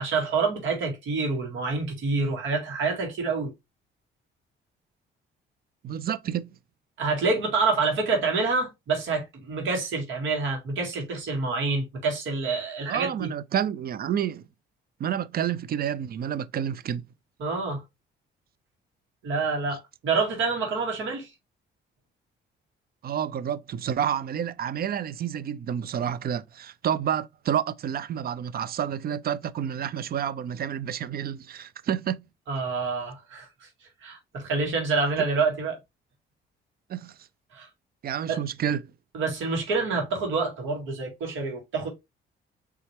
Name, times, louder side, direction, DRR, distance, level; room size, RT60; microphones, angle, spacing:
voice 1, 0.0-3.5 7.0-13.3 17.4-17.8 19.2-21.3 32.5-33.5 34.0-35.8 37.5-37.7 38.3-38.4 39.1-41.9, right 4 dB, 75° right, 2.1 m, -27 dB
voice 2, 5.8-6.5 12.9-14.5 15.0-17.0 23.0-32.2 36.9-37.1 38.0-38.8, right 9 dB, 50° right, 0.5 m, -29 dB
4.2 x 3.4 x 3.3 m
cardioid pair, 90°, 20 cm